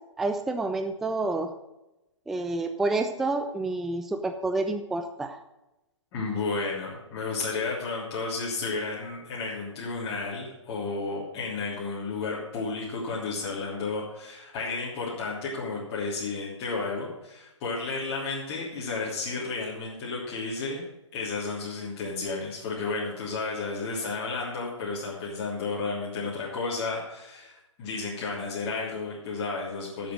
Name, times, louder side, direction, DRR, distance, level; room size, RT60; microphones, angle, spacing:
voice 1, 0.2-1.5 2.3-5.4, right 2 dB, ahead, 7 dB, 0.3 m, -29 dB
voice 2, 6.1-20.8 21.1-30.1, left 4 dB, 25° left, -6 dB, 3.1 m, -32 dB
11.5 x 7.3 x 6.3 m, 0.96 s
figure-of-eight pair, 130°, 16 cm